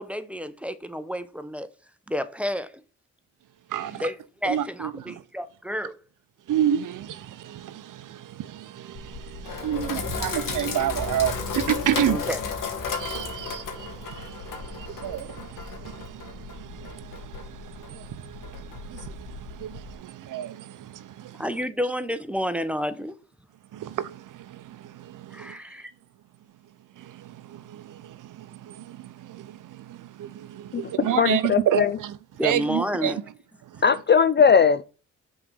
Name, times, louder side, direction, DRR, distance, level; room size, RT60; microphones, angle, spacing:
voice 1, 0.0-1.7 2.1-2.7 4.0-4.2 4.4-6.0 12.1-12.4 21.3-23.1 25.3-25.9 32.4-33.2, equal, 5° right, 0.9 m, -30 dB
voice 2, 3.7-4.1 4.4-5.1 6.5-12.2 12.9-21.4 23.7-25.6 27.0-32.2 32.4-33.1 33.6-33.8, right 11 dB, 60° right, 0.7 m, -30 dB
Sink (filling or washing), 8.9-19.9, left 5 dB, 65° left, 1.8 m, -34 dB
voice 3, 30.7-31.9 33.8-34.8, left 6 dB, 30° left, 0.5 m, -19 dB
5.8 x 4.1 x 6.2 m
supercardioid pair, 50°, 35 cm